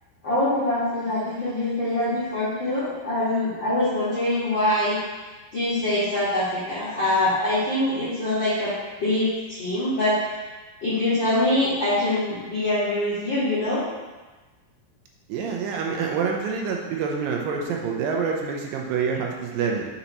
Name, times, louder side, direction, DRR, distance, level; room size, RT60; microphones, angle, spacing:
voice 1, 0.2-5.0 5.5-8.7 9.0-10.4 10.8-13.8, left 1 dB, 65° left, -11 dB, 1.1 m, -24 dB
voice 2, 15.3-19.9, right 5 dB, 85° right, 0 dB, 2.0 m, -27 dB
6.9 x 5.7 x 2.9 m, 1.2 s
omnidirectional pair, 4.8 m